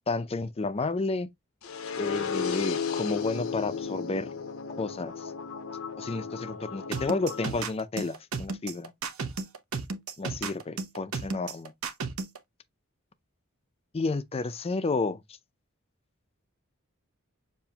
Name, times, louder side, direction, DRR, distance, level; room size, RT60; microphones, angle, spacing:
voice 1, 0.1-1.3 1.9-4.3 4.8-5.2 6.0-8.9 10.2-11.7 13.9-15.2, left 3 dB, 30° left, 0.5 m, -31 dB
sound 1, 1.6-7.6, left 6 dB, 80° left, 0.8 m, -34 dB
sound 2, 6.9-12.4, right 4 dB, 90° right, 0.8 m, -33 dB
6.9 x 2.6 x 2.8 m
head